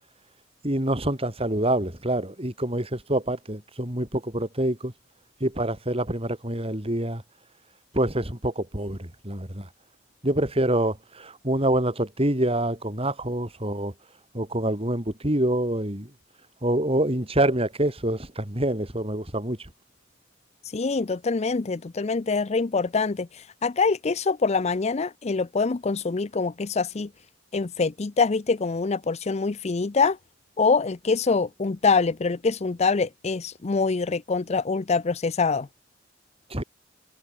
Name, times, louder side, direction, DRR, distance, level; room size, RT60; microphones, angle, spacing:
voice 1, 0.6-4.9 5.4-7.2 7.9-9.7 10.2-13.9 14.3-16.1 16.6-19.7 36.5-36.6, right 1 dB, 30° right, 4.0 m, -26 dB
voice 2, 20.7-27.1 27.5-30.2 30.6-35.7, left 4 dB, 35° left, 0.5 m, -25 dB
head